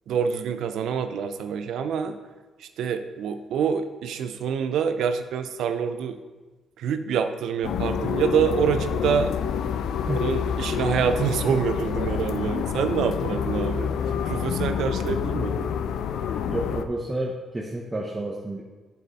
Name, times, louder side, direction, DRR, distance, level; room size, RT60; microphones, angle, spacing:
voice 1, 0.1-2.2 2.6-6.2 6.8-9.3 10.2-13.9 14.2-15.7, right 7 dB, 75° right, 9 dB, 0.6 m, -26 dB
sound 1, 7.6-16.9, left 8 dB, 75° left, 0.5 m, -27 dB
voice 2, 16.5-18.6, right 1 dB, 20° right, -1 dB, 0.8 m, -30 dB
8.3 x 6.4 x 4.2 m, 1.3 s
cardioid pair, 90°, 0 cm